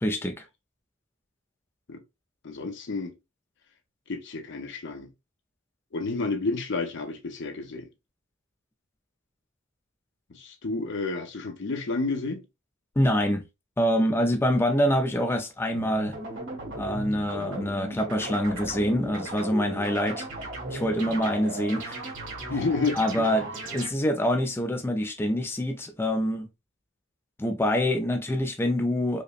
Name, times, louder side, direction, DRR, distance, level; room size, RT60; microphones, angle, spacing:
voice 1, 0.0-0.4 13.0-13.4 13.8-16.1 16.7-20.3 20.7-22.0 23.0-26.5 27.4-29.2, equal, 10° left, 0.4 m, -25 dB
voice 2, 2.4-3.1 4.1-5.1 5.9-7.9 10.3-12.4 22.5-23.3, left 3 dB, 65° left, 0.7 m, -30 dB
sound 1, 15.7-23.9, right 1 dB, 65° right, 1.6 m, -36 dB
5.0 x 2.1 x 2.4 m
head